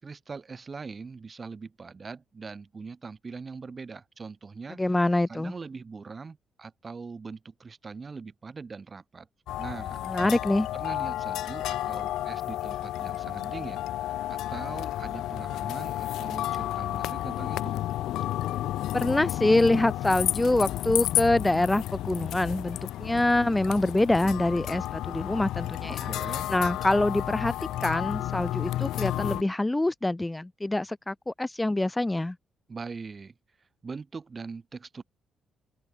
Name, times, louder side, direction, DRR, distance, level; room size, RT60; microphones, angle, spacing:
voice 1, 0.0-4.8 5.3-9.3 9.6-10.1 10.7-13.8 14.3-17.8 25.9-26.5 32.7-33.3 33.8-35.0, right 4 dB, 35° right, 7.2 m, -41 dB
voice 2, 4.8-5.5 10.1-10.7 18.9-26.1 26.5-27.5 27.8-32.4, left 2 dB, 10° left, 4.4 m, -25 dB
sound 1, 9.5-29.4, left 14 dB, 85° left, 2.0 m, -31 dB
open air
cardioid pair, 90°, 0 cm